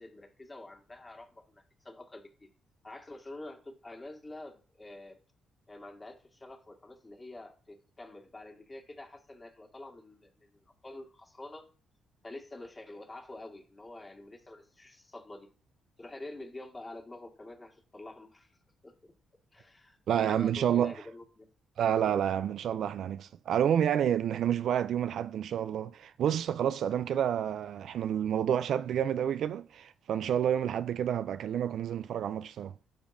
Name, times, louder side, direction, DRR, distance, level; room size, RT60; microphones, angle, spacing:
voice 1, 0.0-2.5 2.8-5.2 5.7-10.5 10.8-11.6 12.2-15.5 16.0-18.5 18.8-19.1 19.5-21.5, left 2 dB, 25° left, 1.8 m, -47 dB
voice 2, 20.1-20.9 21.8-32.7, right 9 dB, 70° right, 0.3 m, -29 dB
9.9 x 5.2 x 2.6 m
cardioid pair, 90°, 0 cm